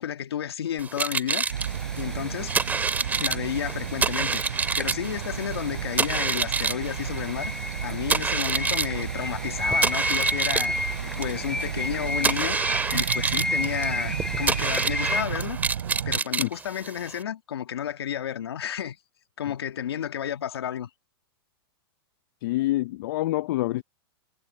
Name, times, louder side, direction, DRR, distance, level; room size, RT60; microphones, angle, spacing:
voice 1, 0.0-1.4 1.9-2.6 3.1-4.4 4.7-7.5 7.8-15.6 16.0-19.0 19.4-20.9, left 9 dB, 80° left, 1.7 m, -32 dB
sound 1, 0.8-17.2, right 5 dB, 15° right, 2.4 m, -28 dB
sound 2, 1.4-15.2, left 1 dB, 5° left, 5.6 m, -33 dB
sound 3, 1.5-16.2, right 9 dB, 80° right, 4.0 m, -33 dB
voice 2, 22.4-23.8, left 17 dB, 60° left, 0.6 m, -26 dB
hypercardioid pair, 125°, 13 cm